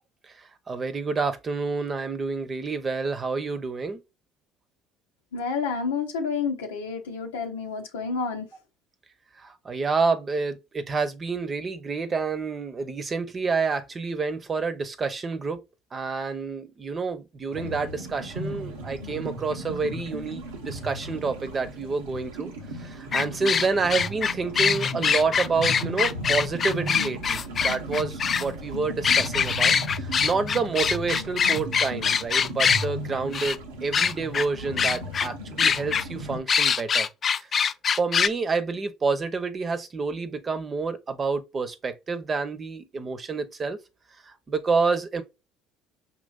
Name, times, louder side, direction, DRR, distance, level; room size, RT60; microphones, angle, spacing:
voice 1, 0.7-4.0 9.4-15.6 15.9-22.5 22.8-37.1 37.4-37.5 37.9-43.8 44.2-45.2, right 4 dB, 35° right, 0.8 m, -28 dB
voice 2, 5.3-8.5, left 5 dB, 90° left, 0.7 m, -29 dB
sound 1, 17.5-36.4, equal, 90° right, 1.0 m, -36 dB
sound 2, 23.1-28.4 29.0-32.8 33.3-33.6 33.9-34.4 34.8-35.3 35.6-36.0 36.5-38.3, left 6 dB, 40° left, 0.3 m, -23 dB
5.3 x 2.9 x 2.4 m
hypercardioid pair, 65°, 0 cm